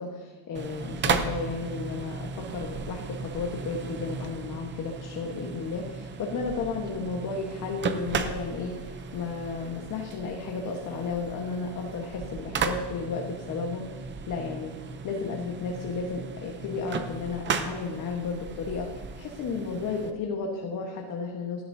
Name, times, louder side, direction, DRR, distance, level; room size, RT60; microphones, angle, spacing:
voice 1, 0.0-14.7 15.0-21.6, left 4 dB, 45° left, 1 dB, 1.3 m, -33 dB
sound 1, 0.5-20.1, right 5 dB, 25° right, 0.6 m, -35 dB
17.0 x 12.0 x 2.7 m, 1.4 s
cardioid pair, 165°, 44 cm